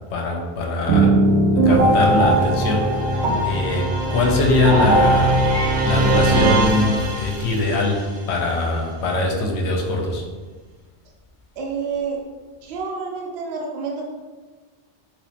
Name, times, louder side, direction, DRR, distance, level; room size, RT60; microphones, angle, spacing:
voice 1, 0.1-1.4 1.7-10.2, left 2 dB, 70° left, 1 dB, 0.9 m, -22 dB
sound 1, 0.9-7.7, right 1 dB, 90° right, 1.0 m, -18 dB
Purr / Meow, 5.4-7.7, left 1 dB, 35° left, 0.6 m, -37 dB
voice 2, 11.6-12.2 12.6-14.1, right 5 dB, 65° right, -1 dB, 0.8 m, -28 dB
3.1 x 3.1 x 2.8 m, 1.4 s
omnidirectional pair, 1.2 m